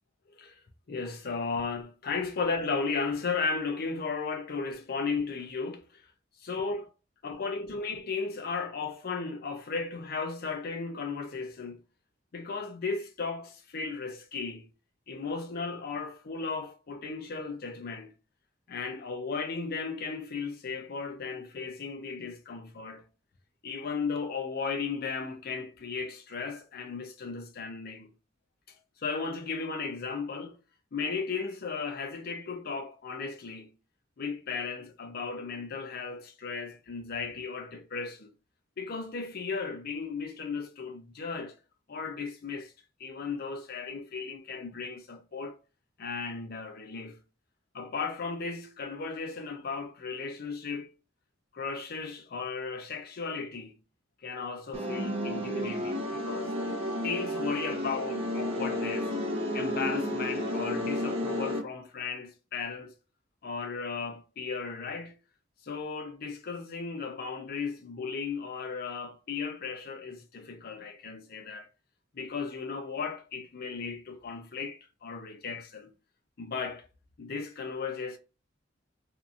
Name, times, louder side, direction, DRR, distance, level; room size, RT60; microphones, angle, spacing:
voice 1, 0.9-6.0 6.5-6.8 7.2-11.8 12.3-14.7 15.1-18.1 18.7-23.0 23.6-28.1 29.0-30.6 30.9-33.7 34.2-38.3 38.8-41.6 41.9-42.7 43.0-45.5 46.0-47.2 47.7-50.9 51.5-53.7 54.2-56.5 57.0-59.2 59.5-62.9 63.4-65.2 65.6-71.7 72.1-75.9 76.4-76.9 77.2-78.2, left 4 dB, 55° left, 0.5 m, -35 dB
sound 1, 54.7-61.6, left 1 dB, 30° right, 0.7 m, -32 dB
2.6 x 2.6 x 2.4 m
head